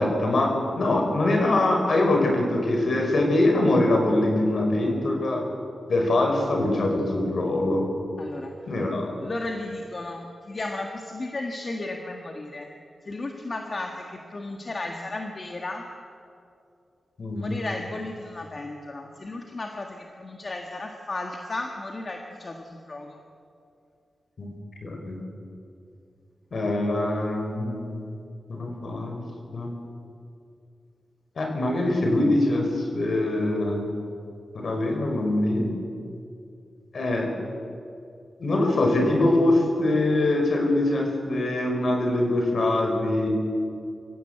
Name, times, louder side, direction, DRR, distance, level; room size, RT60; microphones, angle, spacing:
voice 1, 0.0-5.4 5.9-7.9 8.7-9.1 17.2-17.6 24.4-24.5 24.8-25.2 26.5-28.0 28.5-29.2 29.5-29.7 31.4-33.9 34.5-35.7 36.9-37.3 38.4-43.3, left 1 dB, 60° left, 2 dB, 5.5 m, -23 dB
voice 2, 8.2-8.5 9.2-12.7 13.0-15.9 17.3-23.2, left 2 dB, 40° left, 2 dB, 1.7 m, -34 dB
25.5 x 16.0 x 8.1 m, 2.5 s
wide cardioid pair, 105°, 0 cm